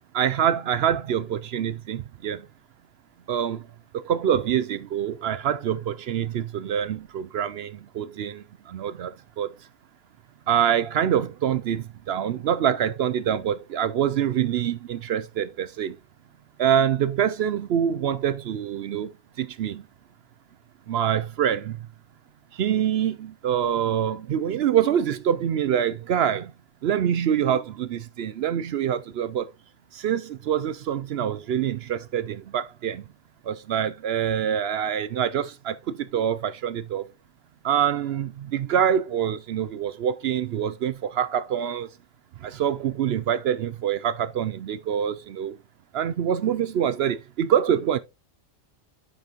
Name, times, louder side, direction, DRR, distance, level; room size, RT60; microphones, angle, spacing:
voice 1, 0.1-2.5 3.3-3.6 3.9-9.5 10.5-16.0 16.6-19.8 20.9-21.8 22.5-26.5 26.8-29.5 29.9-33.0 33.5-37.1 37.6-41.9 42.4-45.6 45.9-48.0, right 9 dB, 65° right, 0.7 m, -25 dB
8.6 x 6.1 x 2.9 m
omnidirectional pair, 1.3 m